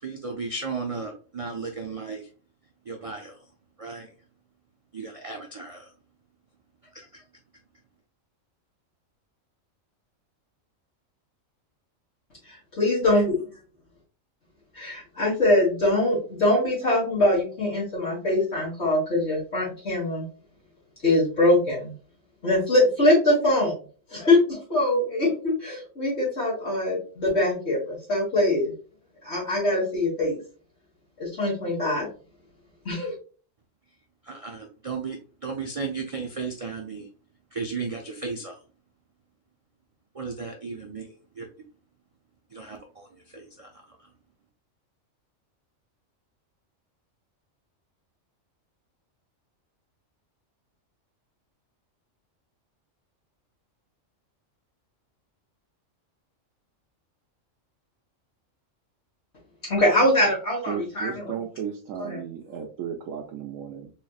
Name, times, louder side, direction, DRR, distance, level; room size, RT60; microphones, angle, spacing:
voice 1, 0.0-2.2 2.9-3.4 3.8-4.1 4.9-5.9 6.9-7.2 34.2-35.2 35.4-37.1 37.5-38.6 40.1-41.5 42.5-44.0, right 4 dB, 50° right, 3 dB, 0.4 m, -35 dB
voice 2, 12.5-13.3 14.7-20.2 21.0-21.9 22.4-23.7 24.1-28.7 29.2-30.4 31.2-32.1 32.9-33.1 59.6-61.4 62.0-62.2, left 1 dB, 55° left, -7 dB, 2.0 m, -23 dB
voice 3, 60.7-63.9, right 8 dB, 90° right, 1 dB, 1.0 m, -34 dB
4.2 x 3.2 x 2.3 m, 0.39 s
omnidirectional pair, 1.3 m